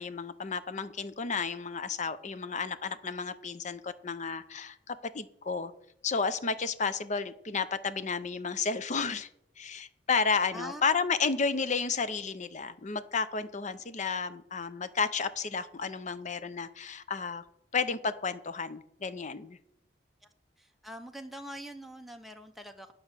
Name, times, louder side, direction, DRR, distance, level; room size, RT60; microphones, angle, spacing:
voice 1, 0.0-5.7 6.0-9.3 9.6-17.4 17.7-19.6, left 5 dB, 45° left, 13 dB, 0.7 m, -32 dB
voice 2, 10.5-10.8 20.6-22.9, equal, ahead, 4 dB, 0.6 m, -44 dB
9.4 x 5.9 x 6.7 m, 0.73 s
head